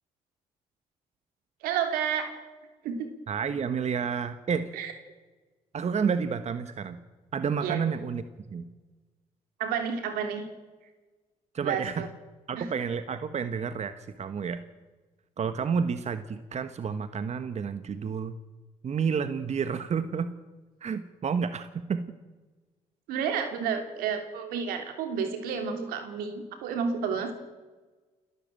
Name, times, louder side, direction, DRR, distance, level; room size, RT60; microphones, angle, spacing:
voice 1, 1.6-2.3 2.8-3.1 4.7-4.9 7.6-7.8 9.6-10.5 11.6-12.1 12.6-12.7 23.1-27.3, right 7 dB, 85° right, 6 dB, 3.1 m, -30 dB
voice 2, 3.3-4.7 5.7-7.0 7.3-8.6 11.5-12.1 12.5-14.6 15.4-18.4 18.8-20.3 20.8-22.1, right 6 dB, 50° right, 11 dB, 1.4 m, -30 dB
29.0 x 13.0 x 9.1 m, 1.3 s
supercardioid pair, 65°, 15 cm